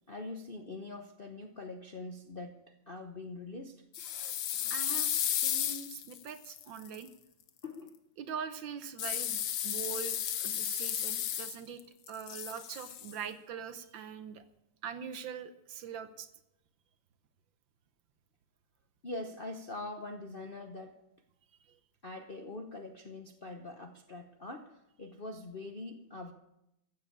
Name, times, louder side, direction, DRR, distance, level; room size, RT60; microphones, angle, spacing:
voice 1, 0.1-3.8 7.6-7.9 19.0-21.0 22.0-26.3, left 2 dB, 45° left, 3 dB, 0.7 m, -43 dB
sound 1, 3.9-7.0 9.0-11.8 12.1-13.1, left 10 dB, 70° left, 1.5 m, -34 dB
voice 2, 4.7-7.1 8.2-14.4 14.8-16.3 21.7-21.8, right 7 dB, 70° right, 11 dB, 1.5 m, -43 dB
15.0 x 7.6 x 8.6 m, 0.85 s
omnidirectional pair, 2.3 m